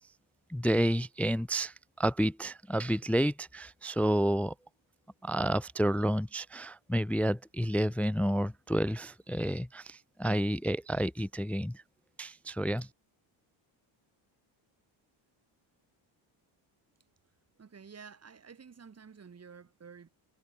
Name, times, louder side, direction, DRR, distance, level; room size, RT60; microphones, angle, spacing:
voice 1, 0.5-4.5 5.2-11.8 12.2-12.9, equal, 5° left, 0.3 m, -30 dB
voice 2, 17.6-20.1, right 6 dB, 30° right, 7.9 m, -51 dB
cardioid pair, 145°, 48 cm